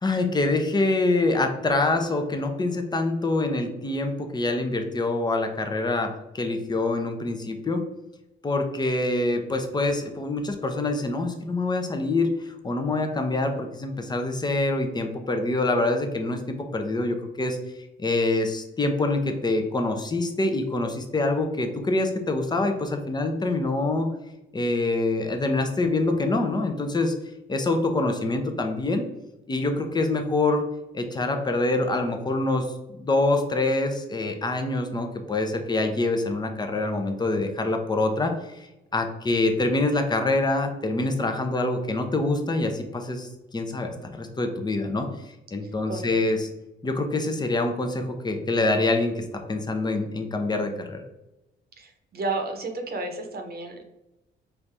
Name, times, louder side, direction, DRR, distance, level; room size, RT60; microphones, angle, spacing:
voice 1, 0.0-7.8 8.4-17.6 18.0-24.1 24.5-27.1 27.5-29.1 29.5-30.6 30.9-32.7 32.9-38.7 38.9-45.1 45.5-46.5 46.8-51.0, left 2 dB, 20° left, 5 dB, 0.7 m, -25 dB
voice 2, 45.9-46.2 51.8-53.8, right 3 dB, 50° right, 4 dB, 0.9 m, -32 dB
4.6 x 2.7 x 3.4 m, 0.95 s
cardioid pair, 90°, 20 cm